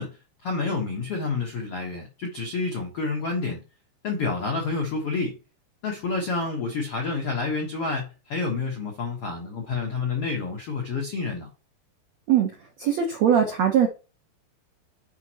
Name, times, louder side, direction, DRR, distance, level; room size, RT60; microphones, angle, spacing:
voice 1, 0.0-3.6 4.0-5.4 5.8-11.5, left 4 dB, 75° left, 1.3 m, -29 dB
voice 2, 12.8-13.9, right 8 dB, 75° right, 1.6 m, -20 dB
10.5 x 5.2 x 3.0 m
omnidirectional pair, 4.9 m